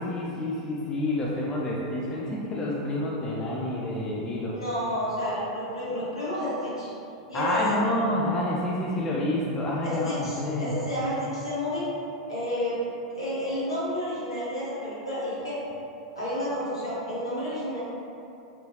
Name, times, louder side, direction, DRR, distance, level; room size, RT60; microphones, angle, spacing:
voice 1, 0.0-4.6 7.3-10.8, left 1 dB, 25° left, -4 dB, 0.4 m, -28 dB
voice 2, 4.5-6.9 7.3-7.6 9.8-11.9 12.3-12.8 13.1-15.6 16.1-17.8, equal, 80° left, -10 dB, 1.4 m, -30 dB
3.6 x 2.8 x 2.8 m, 2.8 s
figure-of-eight pair, 90°, 3 cm